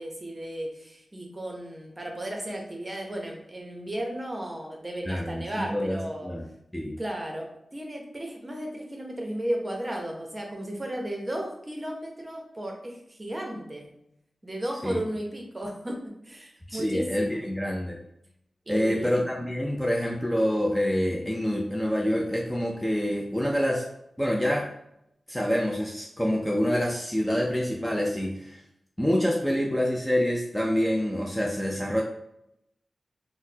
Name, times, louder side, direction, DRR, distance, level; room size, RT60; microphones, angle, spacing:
voice 1, 0.0-6.3 7.0-13.9 14.4-16.0 16.2-17.4 18.7-19.3, right 1 dB, 25° right, 1 dB, 0.7 m, -34 dB
voice 2, 5.1-6.4 6.7-7.0 14.8-15.0 16.7-18.0 18.7-23.8 24.2-24.7 25.3-28.6 29.0-32.0, equal, 5° left, -1 dB, 0.4 m, -26 dB
3.9 x 2.1 x 2.7 m, 0.79 s
wide cardioid pair, 85°, 0 cm